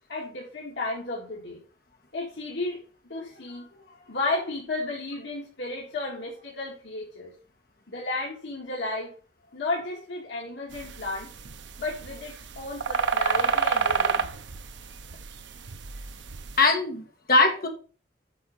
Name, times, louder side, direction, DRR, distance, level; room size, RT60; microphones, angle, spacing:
voice 1, 0.1-1.6 2.1-7.3 7.9-9.1 9.5-11.3 11.8-14.3, left 2 dB, 80° left, -4 dB, 2.2 m, -33 dB
sound 1, 10.7-16.6, right 5 dB, 80° right, 0.7 m, -28 dB
voice 2, 16.6-17.7, left 3 dB, 55° left, 3 dB, 1.8 m, -21 dB
8.4 x 4.6 x 5.5 m, 0.37 s
head